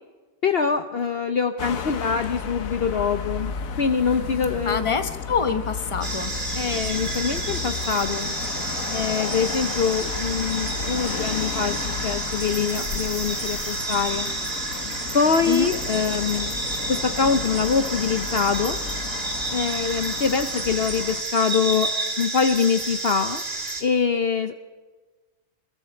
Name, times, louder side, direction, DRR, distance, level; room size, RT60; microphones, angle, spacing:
voice 1, 0.4-4.8 6.6-8.3 8.9-14.3 15.1-16.5 16.9-18.8 19.5-23.4 23.8-24.5, left 6 dB, 50° left, 8 dB, 0.9 m, -24 dB
sound 1, 1.6-21.2, left 6 dB, 85° left, 1.5 m, -33 dB
voice 2, 4.6-6.3 15.4-15.7, left 5 dB, 25° left, 8 dB, 1.0 m, -25 dB
sound 2, 6.0-23.8, right 2 dB, 45° right, 2.5 m, -30 dB
28.5 x 21.5 x 4.5 m, 1.3 s
omnidirectional pair, 1.4 m